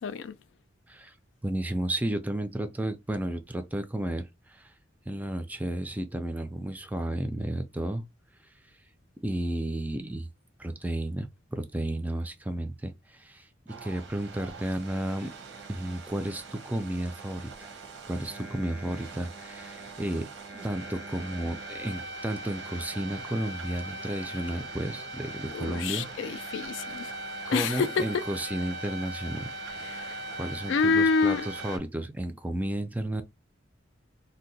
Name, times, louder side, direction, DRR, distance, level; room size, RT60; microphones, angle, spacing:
voice 1, 0.0-0.4 25.5-27.1 27.5-28.2 29.8-30.2 30.7-31.5, left 4 dB, 80° left, 0.4 m, -27 dB
voice 2, 1.4-4.7 5.1-8.0 9.2-10.3 10.6-15.3 15.7-17.7 18.1-26.4 27.5-29.5 30.4-33.2, right 1 dB, 10° right, 0.4 m, -33 dB
sound 1, 13.7-31.8, right 2 dB, 80° right, 0.9 m, -40 dB
2.7 x 2.1 x 4.0 m
head